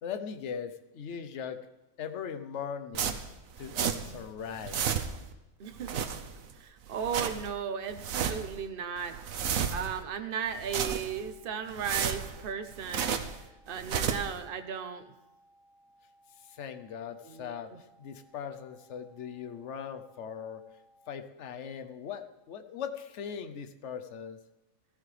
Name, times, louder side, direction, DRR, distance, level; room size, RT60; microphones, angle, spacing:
voice 1, 0.0-1.6 2.0-3.2 3.6-4.8 16.4-20.6 21.1-24.4, left 7 dB, 60° left, 10 dB, 1.1 m, -40 dB
sound 1, 2.9-4.2 4.5-5.3 5.7-6.5 6.9-7.5 7.9-8.6 9.0-10.0 10.5-11.3 11.7-13.4 13.7-14.4, right 7 dB, 80° right, 1.2 m, -33 dB
voice 2, 5.6-6.0 6.6-9.2 9.5-13.2 13.7-15.1 17.2-17.8, right 7 dB, 45° right, 8 dB, 1.0 m, -36 dB
sound 2, 11.1-21.1, right 1 dB, 20° left, 2.4 m, -64 dB
15.0 x 14.0 x 3.4 m, 0.98 s
omnidirectional pair, 1.4 m